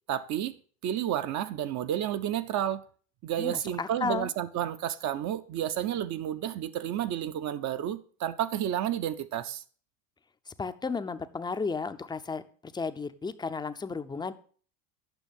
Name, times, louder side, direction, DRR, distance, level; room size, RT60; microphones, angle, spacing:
voice 1, 0.1-0.6 0.8-2.8 3.2-9.6, right 11 dB, 40° right, 0.6 m, -31 dB
voice 2, 3.4-4.3 10.6-14.3, left 4 dB, 10° left, 0.5 m, -33 dB
9.1 x 6.1 x 5.2 m
supercardioid pair, 105°, 43 cm